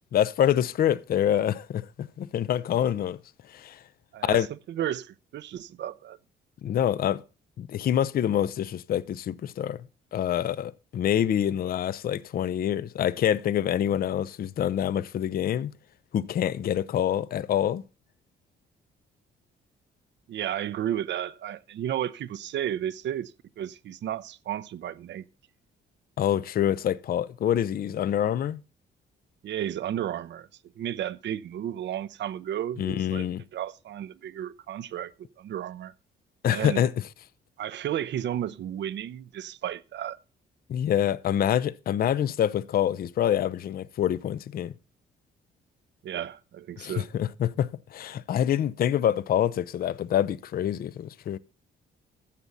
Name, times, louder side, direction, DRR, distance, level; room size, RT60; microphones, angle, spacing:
voice 1, 0.1-3.2 3.5-3.8 4.2-4.5 6.6-7.2 7.6-9.8 10.1-15.7 16.1-17.8 26.2-28.6 32.8-33.4 36.4-36.9 40.7-44.7 46.8-51.4, left 10 dB, 50° left, 0.5 m, -26 dB
voice 2, 4.1-6.2 20.3-25.3 29.4-30.5 30.8-35.9 36.5-36.9 37.6-40.2 46.0-47.1, right 11 dB, 65° right, 0.6 m, -33 dB
14.5 x 7.0 x 3.9 m
cardioid pair, 90°, 20 cm